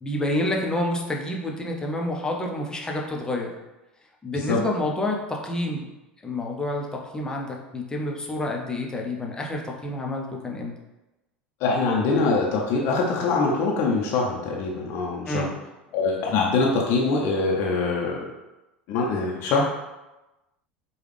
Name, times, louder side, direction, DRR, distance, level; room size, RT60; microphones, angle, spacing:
voice 1, 0.0-3.5 4.2-5.9 6.2-10.7 15.3-15.5, left 1 dB, 15° left, 0 dB, 0.7 m, -28 dB
voice 2, 11.6-15.5 15.9-18.3 18.9-19.6, left 3 dB, 50° left, -2 dB, 0.7 m, -23 dB
4.7 x 2.4 x 3.3 m, 1.0 s
figure-of-eight pair, 75°, 6 cm